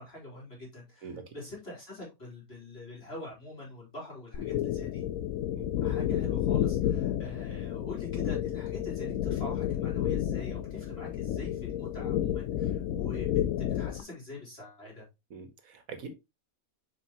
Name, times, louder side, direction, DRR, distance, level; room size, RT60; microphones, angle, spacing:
voice 1, 0.0-5.1 5.8-13.3 13.7-15.1, left 1 dB, 45° left, 3.8 m, -44 dB
voice 2, 1.0-1.3 5.6-5.7 12.0-12.1 15.3-16.2, right 4 dB, 75° right, 1.6 m, -43 dB
sound 1, 4.3-14.0, left 11 dB, 80° left, 1.0 m, -31 dB
7.3 x 5.1 x 2.9 m
omnidirectional pair, 1.5 m